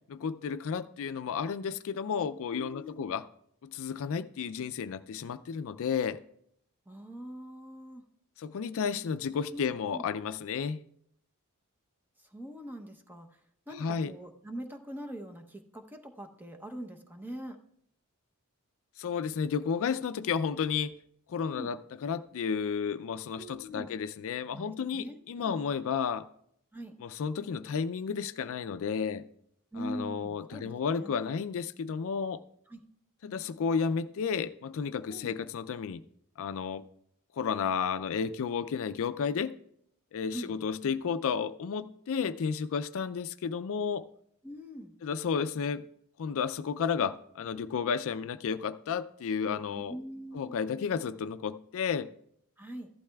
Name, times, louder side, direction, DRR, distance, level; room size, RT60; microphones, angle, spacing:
voice 1, 0.1-3.2 3.6-6.2 8.4-10.8 13.8-14.1 19.0-20.9 21.3-26.3 27.0-29.3 29.8-32.4 33.2-36.0 36.4-36.9 37.4-39.5 40.1-44.1 45.0-45.9 46.2-50.0 50.3-52.1, left 6 dB, 65° left, 0.4 m, -32 dB
voice 2, 2.6-3.1 6.9-8.0 9.5-10.1 12.2-13.4 13.7-17.6 21.4-21.7 23.3-23.9 24.5-25.6 26.7-26.9 29.7-31.2 32.7-32.8 35.1-35.3 40.3-40.6 44.4-44.9 49.7-50.6 52.6-52.9, equal, 10° right, 0.7 m, -43 dB
14.5 x 11.5 x 2.3 m
head